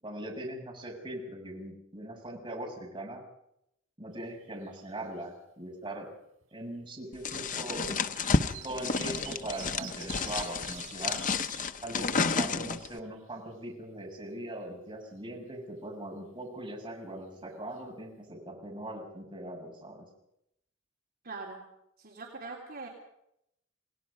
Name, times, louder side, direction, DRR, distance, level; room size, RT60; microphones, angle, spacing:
voice 1, 0.0-3.2 4.0-6.1 6.5-8.0 8.6-11.3 11.8-20.1, right 1 dB, 25° right, -1 dB, 7.0 m, -40 dB
sound 1, 4.2-4.9 5.2-5.3 6.4-6.5 7.4-11.7 12.1-12.2 12.5-13.5 17.4-17.5 17.7-17.8, right 11 dB, 80° right, 6.3 m, -48 dB
sound 2, 7.2-13.0, left 4 dB, 40° left, 1.0 m, -31 dB
voice 2, 21.2-21.6 22.0-22.9, right 3 dB, 50° right, -1 dB, 3.4 m, -42 dB
28.5 x 19.0 x 5.4 m, 0.79 s
head